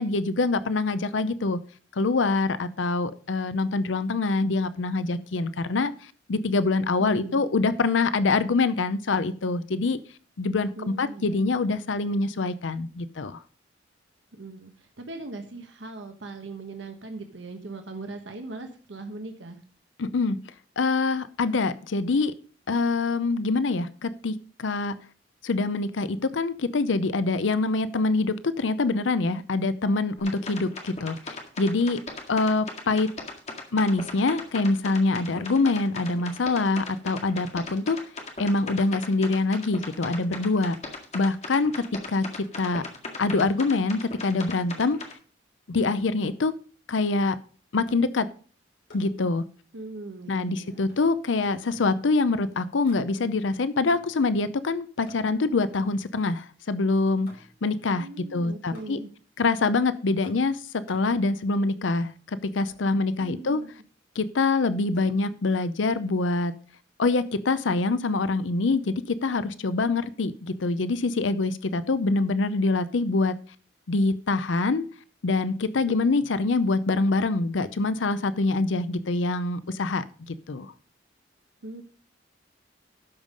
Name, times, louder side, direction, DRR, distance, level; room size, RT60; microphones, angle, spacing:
voice 1, 0.0-1.6 1.9-10.0 10.4-13.4 20.0-20.4 20.8-22.3 22.7-24.9 25.4-32.0 32.3-33.1 33.7-38.0 38.4-40.8 41.1-42.8 43.2-45.0 45.7-46.5 46.9-47.4 47.7-48.3 48.9-49.4 50.3-57.3 57.6-59.0 59.4-63.6 64.2-66.5 67.0-73.4 73.9-74.9 75.2-80.7, left 3 dB, 85° left, 14 dB, 0.6 m, -25 dB
voice 2, 7.0-7.4 10.8-11.5 14.3-19.6 49.7-50.9 58.0-59.1 63.2-63.7 75.9-76.1 81.6-81.8, right 2 dB, 75° right, 5 dB, 1.2 m, -40 dB
sound 1, 30.2-45.1, left 3 dB, 40° left, 2.0 m, -38 dB
sound 2, 47.8-48.2 48.9-49.3 50.9-52.0 52.8-53.4 53.9-54.3 55.0-56.2 57.3-57.7 58.7-59.2 60.2-61.2 62.7-62.8 63.2-63.8 64.9-65.3, equal, 60° left, 3.3 m, -54 dB
12.5 x 5.5 x 5.1 m, 0.40 s
head